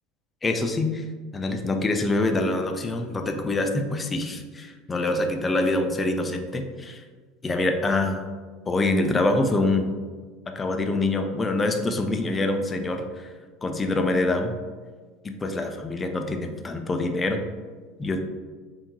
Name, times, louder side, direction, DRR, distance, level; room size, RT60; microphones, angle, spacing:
voice 1, 0.4-1.0 1.3-7.0 7.4-8.3 8.7-9.9 10.5-13.3 13.6-14.5 15.2-17.4 18.0-18.2, left 2 dB, 20° left, 4 dB, 0.4 m, -25 dB
3.5 x 2.7 x 2.9 m, 1.4 s
supercardioid pair, 100°, 0 cm